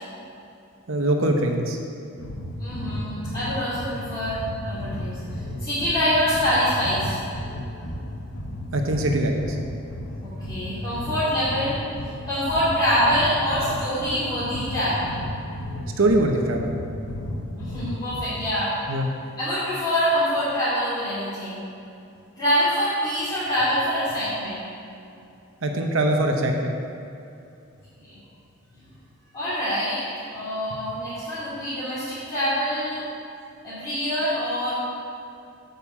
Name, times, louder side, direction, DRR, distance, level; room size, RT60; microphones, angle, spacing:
voice 1, 0.9-1.8 8.7-9.6 16.0-16.7 18.9-19.1 25.6-26.7, right 1 dB, 70° right, 2 dB, 1.0 m, -22 dB
sound 1, 2.2-18.6, left 1 dB, 80° left, 1.0 m, -34 dB
voice 2, 2.6-7.2 10.2-11.8 12.3-15.1 17.6-18.7 19.4-21.6 22.4-24.6 28.1-28.2 29.3-30.0 30.3-33.0 33.6-34.7, equal, 20° left, -14 dB, 2.6 m, -25 dB
8.5 x 5.4 x 7.4 m, 2.6 s
head